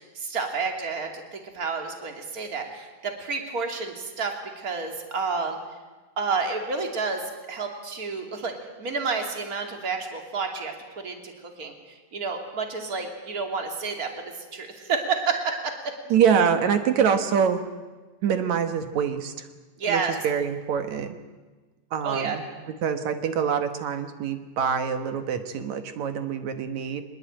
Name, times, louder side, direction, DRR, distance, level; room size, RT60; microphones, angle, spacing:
voice 1, 0.1-5.6 6.2-8.5 8.8-11.3 11.6-11.7 12.1-15.9 19.8-20.1 22.0-22.4, right 4 dB, 30° right, 3 dB, 2.9 m, -30 dB
voice 2, 16.1-17.6 18.2-19.5 19.9-21.2 21.9-22.4 22.8-27.0, right 7 dB, 65° right, 8 dB, 2.6 m, -25 dB
23.0 x 21.0 x 8.9 m, 1.3 s
omnidirectional pair, 3.7 m